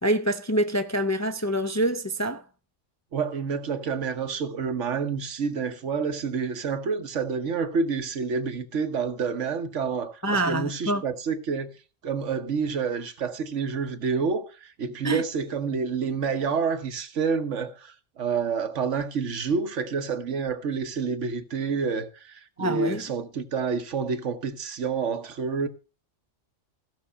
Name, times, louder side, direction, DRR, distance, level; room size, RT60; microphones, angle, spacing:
voice 1, 0.0-2.4 10.2-11.0 15.0-15.2 22.6-23.0, right 1 dB, 20° left, 0.4 m, -26 dB
voice 2, 3.1-11.7 12.0-25.7, right 5 dB, 80° right, 1.4 m, -28 dB
15.0 x 6.1 x 5.6 m
omnidirectional pair, 1.2 m